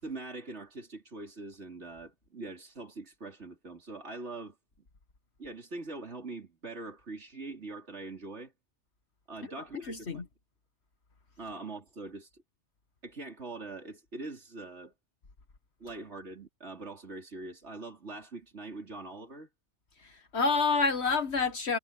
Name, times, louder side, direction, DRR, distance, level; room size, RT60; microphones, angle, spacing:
voice 1, 0.0-4.6 5.4-8.5 9.3-10.2 11.4-12.4 13.0-14.9 15.8-19.5, right 3 dB, 75° right, 4.2 m, -43 dB
voice 2, 9.9-10.2 20.0-21.8, left 4 dB, 70° left, 1.8 m, -28 dB
omnidirectional pair, 1.2 m